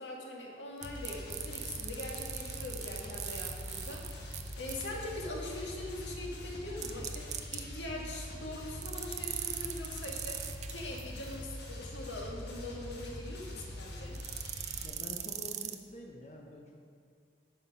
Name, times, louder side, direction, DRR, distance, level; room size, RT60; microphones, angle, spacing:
voice 1, 0.0-4.0 4.6-14.2, left 1 dB, 85° left, -1 dB, 1.7 m, -42 dB
sound 1, 0.8-14.9, left 1 dB, 65° left, 1.5 m, -44 dB
sound 2, 0.8-4.9 6.8-7.6 8.8-11.3 14.1-15.8, right 11 dB, 40° right, 0.5 m, -40 dB
voice 2, 14.8-16.8, left 1 dB, 40° left, -1 dB, 0.8 m, -47 dB
9.9 x 6.6 x 5.4 m, 2.1 s
head